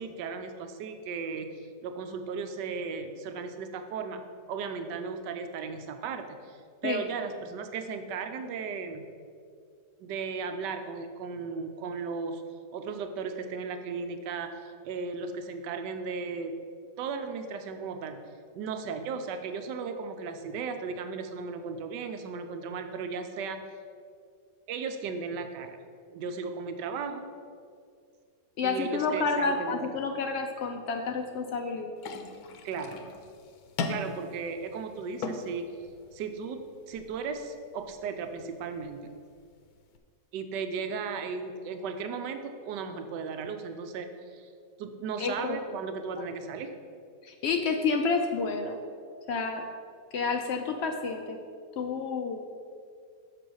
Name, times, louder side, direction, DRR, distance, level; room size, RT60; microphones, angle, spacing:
voice 1, 0.0-1.5 1.8-4.2 4.5-9.1 10.0-12.4 12.7-16.5 17.0-18.2 18.5-23.6 24.7-25.8 26.1-27.3 28.6-29.9 32.6-33.0 33.9-35.8 36.1-36.6 36.9-39.0 40.3-44.5 44.8-46.7, right 5 dB, 90° right, 7 dB, 1.3 m, -36 dB
voice 2, 28.6-31.9 45.2-45.6 47.2-48.8 49.3-49.7 50.1-51.4 51.8-52.5, left 4 dB, 85° left, 4 dB, 0.5 m, -29 dB
sound 1, 32.0-40.0, left 4 dB, 70° left, 1.1 m, -41 dB
6.7 x 5.4 x 6.2 m, 2.2 s
omnidirectional pair, 1.8 m